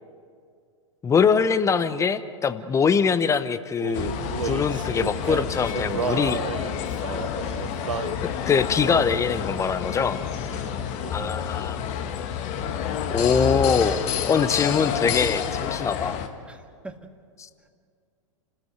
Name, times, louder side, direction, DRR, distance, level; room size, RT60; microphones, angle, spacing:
voice 1, 1.0-4.1 4.4-6.4 8.2-10.2 11.1-11.8 13.1-14.0 14.3-16.2, left 6 dB, 20° left, 13 dB, 1.0 m, -23 dB
Male singing, 3.8-8.2 8.9-9.3 10.0-10.2 10.5-11.5, right 7 dB, 85° right, 0.7 m, -33 dB
sound 1, 3.9-16.3, left 8 dB, 45° left, 1.7 m, -29 dB
voice 2, 7.4-7.9 10.3-10.8 16.5-17.0 17.6-17.7, right 2 dB, 5° right, 6 dB, 1.7 m, -45 dB
29.5 x 13.5 x 8.1 m, 2.1 s
hypercardioid pair, 100°, 16 cm